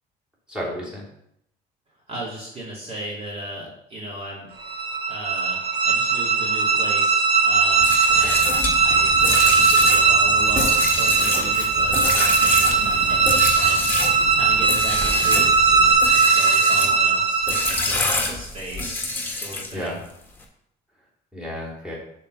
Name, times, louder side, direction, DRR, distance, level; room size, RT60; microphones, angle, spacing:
voice 1, 0.5-1.0 8.2-8.3 12.8-13.0 19.7-20.0 21.3-22.0, equal, 5° right, -5 dB, 3.2 m, -32 dB
voice 2, 2.1-4.5 5.1-13.9 14.3-19.0 19.3-20.0, right 1 dB, 35° right, -5 dB, 2.6 m, -36 dB
sound 1, 4.6-18.0, right 4 dB, 75° right, 1.2 m, -19 dB
sound 2, 7.7-14.2 14.6-15.5 15.9-17.0 17.5-19.9, left 2 dB, 10° left, 1.5 m, -26 dB
Writing, 8.1-15.9, right 4 dB, 50° right, 1.5 m, -36 dB
6.7 x 4.2 x 6.3 m, 0.75 s
cardioid pair, 110°, 17 cm